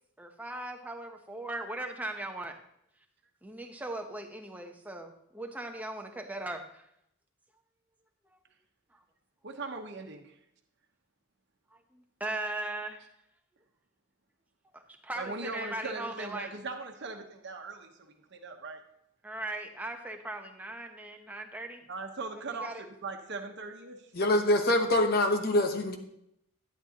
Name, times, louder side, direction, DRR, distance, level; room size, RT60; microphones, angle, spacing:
voice 1, 0.2-2.6 3.4-6.8 11.9-13.0 14.7-16.5 19.2-21.8 22.5-22.8, right 2 dB, 5° right, 4 dB, 0.9 m, -39 dB
voice 2, 9.4-10.3 15.2-18.8 21.9-24.0, right 3 dB, 55° right, 3 dB, 1.1 m, -40 dB
voice 3, 24.1-26.0, left 1 dB, 45° left, 5 dB, 1.1 m, -25 dB
11.0 x 10.5 x 2.9 m, 0.77 s
head